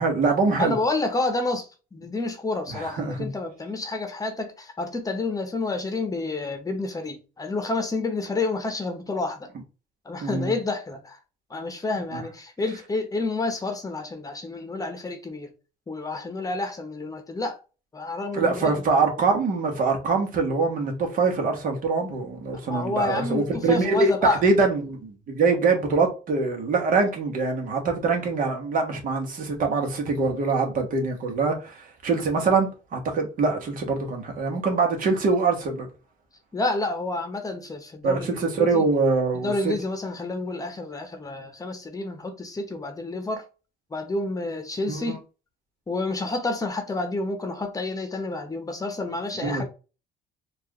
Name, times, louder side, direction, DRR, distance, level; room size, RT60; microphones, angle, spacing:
voice 1, 0.0-0.8 2.7-3.3 10.2-10.5 12.1-12.2 18.3-35.9 38.0-39.7 44.9-45.2 49.4-49.6, right 4 dB, 55° right, 1.4 m, -24 dB
voice 2, 0.6-9.5 10.0-11.2 11.5-15.5 15.9-17.6 17.9-18.7 22.6-24.4 36.5-38.8 39.3-43.4 43.9-45.2 45.9-49.6, left 2 dB, 20° left, 0.9 m, -29 dB
4.5 x 2.6 x 3.0 m
cardioid pair, 110°, 17 cm